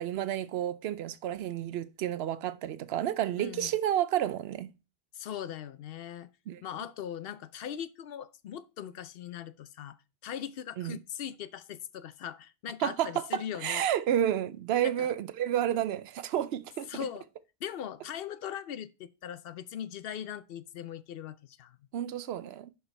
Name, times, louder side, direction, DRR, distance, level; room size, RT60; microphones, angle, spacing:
voice 1, 0.0-4.7 6.5-6.6 10.8-11.0 12.8-16.9 21.9-22.7, right 11 dB, 75° right, 0.8 m, -30 dB
voice 2, 3.4-3.7 5.1-6.3 6.6-10.0 10.2-13.9 14.8-15.1 16.9-17.3 17.6-21.8, left 9 dB, 70° left, 0.7 m, -40 dB
11.0 x 4.6 x 3.2 m
omnidirectional pair, 1.1 m